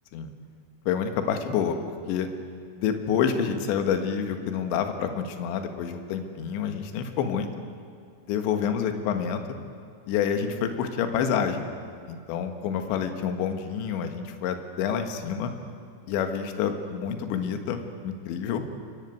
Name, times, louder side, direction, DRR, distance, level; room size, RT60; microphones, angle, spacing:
voice 1, 0.9-2.3 2.8-7.5 8.3-9.4 10.1-11.7 12.1-15.5 16.1-18.6, left 7 dB, 70° left, 7 dB, 3.6 m, -28 dB
28.5 x 15.0 x 9.4 m, 2.3 s
omnidirectional pair, 5.7 m